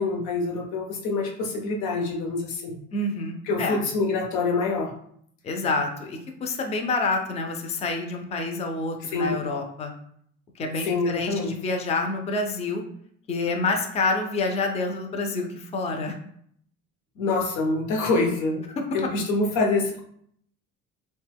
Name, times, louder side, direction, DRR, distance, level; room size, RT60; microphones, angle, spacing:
voice 1, 0.0-2.8 3.5-4.9 9.1-9.4 10.8-11.5 17.2-18.6 18.9-20.0, left 3 dB, 70° left, 2 dB, 0.8 m, -25 dB
voice 2, 2.9-3.8 5.4-9.9 10.6-12.8 13.3-16.1 18.8-19.1, left 3 dB, 20° left, 3 dB, 0.4 m, -28 dB
2.8 x 2.2 x 3.3 m, 0.66 s
cardioid pair, 115°, 31 cm